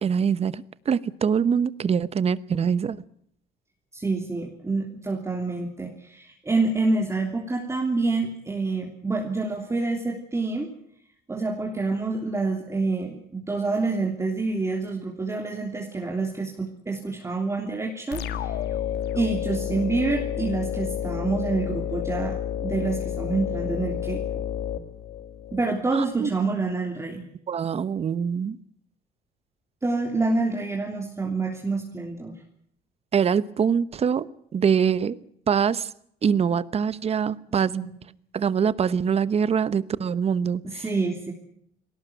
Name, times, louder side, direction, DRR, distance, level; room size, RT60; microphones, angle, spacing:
voice 1, 0.0-3.0 25.9-26.3 27.5-28.6 33.1-35.2 35.5-35.9 36.2-37.7 38.3-40.8, right 7 dB, 35° right, 17 dB, 1.0 m, -24 dB
voice 2, 3.9-10.7 11.3-18.6 19.1-22.4 22.6-24.4 25.5-27.3 29.8-32.3 37.7-37.9 40.6-41.3, right 3 dB, 15° right, 1 dB, 3.2 m, -27 dB
sound 1, 18.1-25.6, left 9 dB, 75° left, 1.9 m, -30 dB
20.0 x 18.0 x 9.4 m, 0.69 s
cardioid pair, 110°, 17 cm